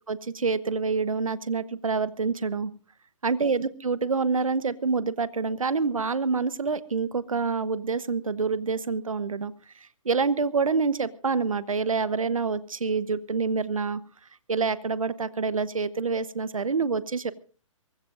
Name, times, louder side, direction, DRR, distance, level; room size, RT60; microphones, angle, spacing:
voice 1, 0.1-2.7 3.2-9.5 10.0-14.0 14.5-17.3, right 4 dB, 80° right, 16 dB, 1.1 m, -27 dB
23.5 x 20.0 x 2.6 m, 0.38 s
figure-of-eight pair, 135°, 17 cm